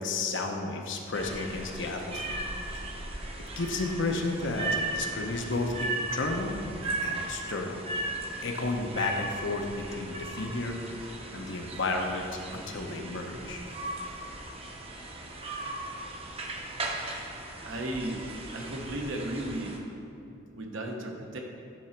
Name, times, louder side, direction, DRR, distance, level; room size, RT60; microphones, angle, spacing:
voice 1, 0.0-2.4 2.7-2.8 3.6-6.6 7.0-7.8 8.4-13.6, left 3 dB, 65° left, 3 dB, 0.8 m, -32 dB
sound 1, 1.1-19.8, right 2 dB, 30° right, 0.7 m, -37 dB
voice 2, 17.6-18.2 18.5-19.7 20.5-21.4, right 1 dB, 80° right, 1 dB, 1.0 m, -34 dB
10.5 x 3.9 x 4.4 m, 2.7 s
head